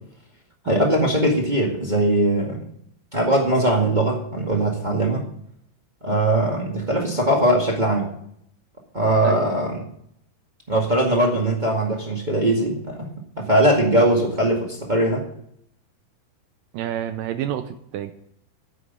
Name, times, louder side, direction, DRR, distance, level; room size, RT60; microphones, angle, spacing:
voice 1, 0.6-2.6 3.1-5.2 6.0-8.1 8.9-9.8 10.7-13.1 13.4-15.3, right 1 dB, 30° right, -1 dB, 0.7 m, -20 dB
voice 2, 16.7-18.1, right 11 dB, 80° right, 10 dB, 2.0 m, -29 dB
9.6 x 8.4 x 8.3 m, 0.69 s
omnidirectional pair, 4.7 m